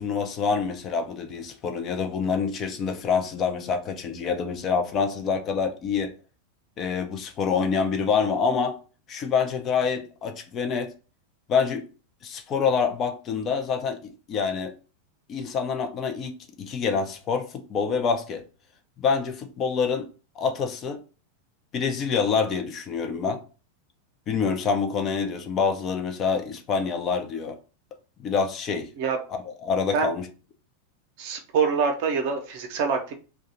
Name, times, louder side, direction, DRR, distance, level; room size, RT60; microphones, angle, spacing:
voice 1, 0.0-6.1 6.8-8.8 9.1-10.9 11.5-11.8 12.2-14.7 15.3-18.4 19.0-20.1 20.4-21.0 21.7-23.4 24.3-27.6 28.2-28.9 29.3-30.3, left 5 dB, 30° left, 0.5 m, -26 dB
voice 2, 31.2-33.1, right 5 dB, 50° right, 0.6 m, -25 dB
2.7 x 2.3 x 4.0 m
figure-of-eight pair, 90°, 0 cm